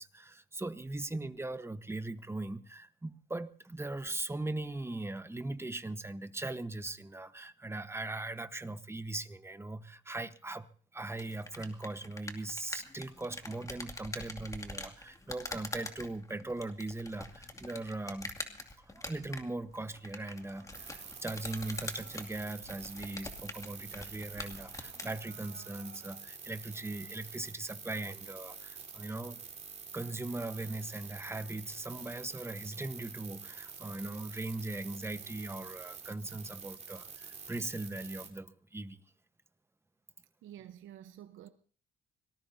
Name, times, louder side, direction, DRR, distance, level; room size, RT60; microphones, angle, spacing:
voice 1, 0.0-18.3 18.8-29.4 29.9-39.0, right 2 dB, 15° right, 1.1 m, -40 dB
sound 1, 11.1-25.1, left 2 dB, 15° left, 2.4 m, -45 dB
Human voice, 20.2-22.3 22.7-23.3 23.8-23.9 24.2-26.3 26.7-27.3, right 6 dB, 60° right, 4.7 m, -60 dB
sound 2, 20.7-38.3, right 5 dB, 35° right, 3.8 m, -48 dB
voice 2, 40.4-41.5, right 11 dB, 80° right, 1.0 m, -49 dB
25.0 x 19.0 x 2.8 m
cardioid pair, 90°, 20 cm